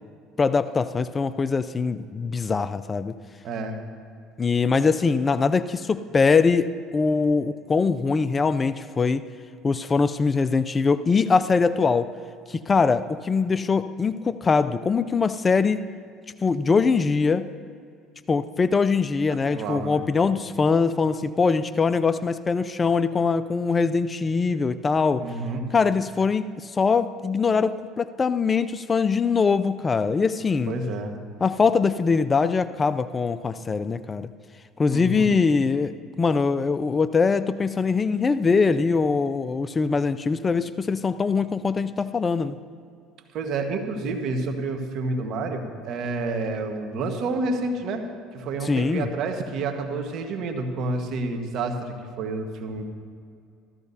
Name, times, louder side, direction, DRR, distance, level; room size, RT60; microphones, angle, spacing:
voice 1, 0.4-3.1 4.4-9.2 9.6-12.1 12.5-15.8 16.4-17.5 18.3-25.2 25.7-30.7 31.4-34.3 34.8-35.9 36.2-42.6 48.6-49.1, left 4 dB, 30° left, 13 dB, 0.4 m, -22 dB
voice 2, 3.4-3.8 19.3-20.0 25.2-25.7 30.7-31.1 34.9-35.3 43.3-48.0 48.3-52.9, right 3 dB, 60° right, 4 dB, 1.4 m, -29 dB
14.5 x 14.0 x 2.8 m, 2.3 s
hypercardioid pair, 80°, 0 cm